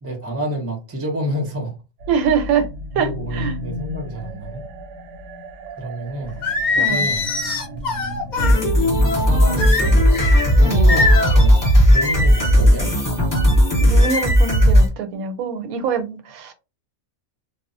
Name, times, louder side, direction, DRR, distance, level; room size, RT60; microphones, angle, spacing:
voice 1, 0.0-1.7 2.9-4.7 5.8-6.4 6.7-7.3 9.2-10.1 10.5-12.9, right 1 dB, 15° right, 0.5 m, -29 dB
sound 1, 2.0-10.4, equal, 70° right, 0.9 m, -34 dB
voice 2, 2.1-2.7 2.9-3.5 6.8-7.1 10.6-10.9 13.8-16.5, right 6 dB, 90° right, 1.1 m, -24 dB
Singing, 6.4-8.6 9.6-10.4 10.9-11.4, left 3 dB, 50° left, 0.6 m, -22 dB
sound 2, 8.4-14.9, equal, 15° left, 0.8 m, -15 dB
2.3 x 2.0 x 3.7 m
omnidirectional pair, 1.4 m